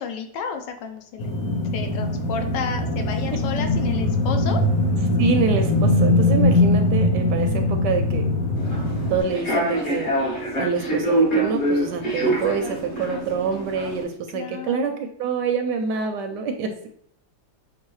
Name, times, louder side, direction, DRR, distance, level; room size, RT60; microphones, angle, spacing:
voice 1, 0.0-1.3 1.7-4.6 14.3-14.8, left 6 dB, 75° left, 5 dB, 1.2 m, -31 dB
sound 1, 1.2-9.2, left 2 dB, 55° left, 1.0 m, -21 dB
voice 2, 5.2-8.3 9.1-16.9, right 5 dB, 75° right, 6 dB, 1.1 m, -26 dB
Human voice / Subway metro underground, 8.6-14.0, right 1 dB, 30° left, 1.2 m, -25 dB
6.2 x 2.3 x 3.0 m, 0.65 s
omnidirectional pair, 2.0 m